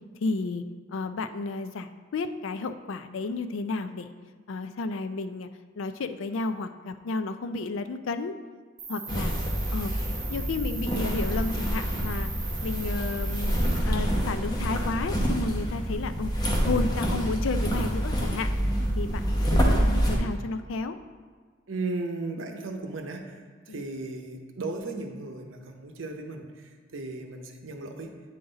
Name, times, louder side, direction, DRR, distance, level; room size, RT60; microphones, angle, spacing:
voice 1, 0.2-0.6 0.9-4.1 4.5-5.5 5.8-8.4 8.9-9.3 9.7-9.9 10.3-12.3 12.6-13.5 13.8-16.3 16.6-18.5 19.0-19.2 19.5-21.0 23.7-23.8, left 3 dB, 85° left, 10 dB, 0.4 m, -32 dB
Cricket, 8.8-13.8, right 4 dB, 45° right, 1.8 m, -40 dB
sound 1, 9.1-20.2, equal, 20° left, 0.8 m, -27 dB
voice 2, 21.7-28.1, right 3 dB, 90° right, 4 dB, 0.7 m, -36 dB
9.1 x 3.9 x 3.9 m, 1.5 s
head